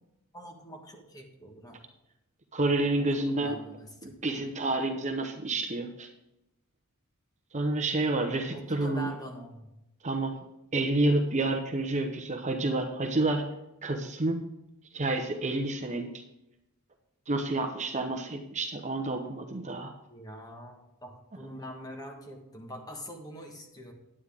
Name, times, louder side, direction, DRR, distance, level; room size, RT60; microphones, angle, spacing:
voice 1, 0.3-1.8 3.0-3.9 8.5-9.7 20.1-23.9, equal, 15° left, 1 dB, 1.4 m, -44 dB
voice 2, 2.5-3.5 4.0-6.1 7.5-9.1 10.0-10.4 10.7-13.4 13.8-14.4 14.9-16.1 17.3-19.9, right 2 dB, 30° right, 5 dB, 0.8 m, -29 dB
9.7 x 9.4 x 3.5 m, 0.88 s
head